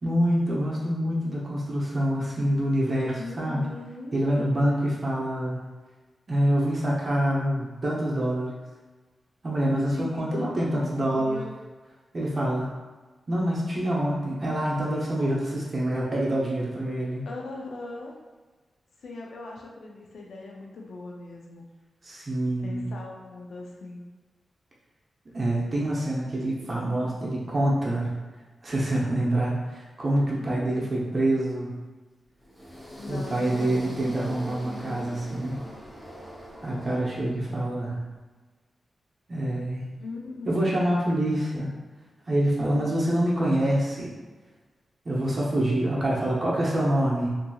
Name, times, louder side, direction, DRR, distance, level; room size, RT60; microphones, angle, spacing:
voice 1, 0.0-3.6 4.1-5.6 6.3-8.6 9.4-11.4 12.1-12.7 13.3-17.2 22.0-22.8 25.3-28.2 28.6-31.7 33.1-35.6 36.6-38.0 39.3-39.9 40.5-41.7 42.3-44.1 45.0-47.3, right 1 dB, 45° right, -4 dB, 0.7 m, -26 dB
voice 2, 3.2-4.2 9.9-11.5 17.3-18.1 19.0-21.7 22.6-24.0 30.4-31.0 33.0-34.1 40.0-40.6, left 3 dB, 85° left, -1 dB, 0.5 m, -40 dB
sound 1, 32.4-37.6, equal, ahead, 0.7 m, -42 dB
2.7 x 2.6 x 2.3 m, 1.3 s
cardioid pair, 75°, 0 cm